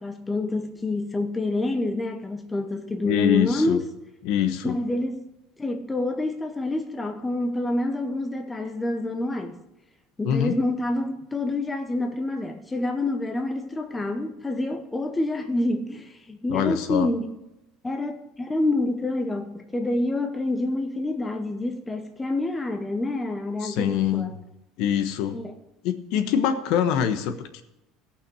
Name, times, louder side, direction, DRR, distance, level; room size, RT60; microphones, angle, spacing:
voice 1, 0.0-3.8 4.6-5.2 5.6-9.6 10.2-17.3 17.8-24.4 25.3-25.5, left 2 dB, 10° left, 0.8 m, -27 dB
voice 2, 3.0-3.8 4.2-4.8 10.2-10.5 16.5-17.1 23.6-24.3 24.8-25.4 25.8-27.6, left 9 dB, 60° left, 1.1 m, -24 dB
17.0 x 5.9 x 6.2 m
cardioid pair, 170°, 0 cm